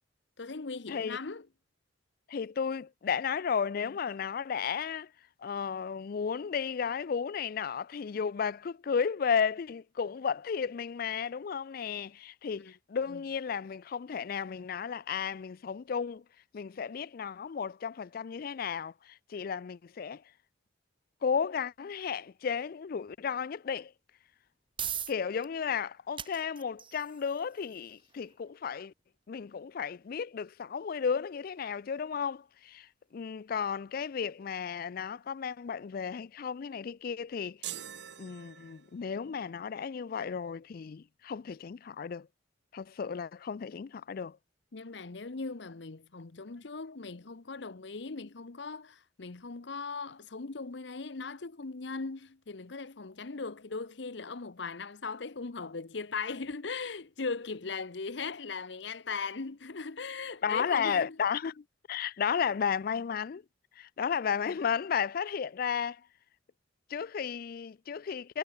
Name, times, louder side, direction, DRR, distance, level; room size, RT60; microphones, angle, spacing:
voice 1, 0.4-1.5 12.6-12.7 13.1-13.2 44.7-61.2, left 4 dB, 65° left, 0.9 m, -39 dB
voice 2, 2.3-5.1 5.4-16.2 16.5-20.2 21.2-23.9 25.1-28.9 29.3-32.9 33.1-37.6 38.2-42.3 42.7-44.4 60.4-63.4 63.8-66.0 66.9-68.4, left 6 dB, 50° left, 0.4 m, -33 dB
sound 1, 24.3-39.2, right 9 dB, 25° right, 3.7 m, -48 dB
sound 2, 37.6-39.2, right 11 dB, 65° right, 1.4 m, -43 dB
head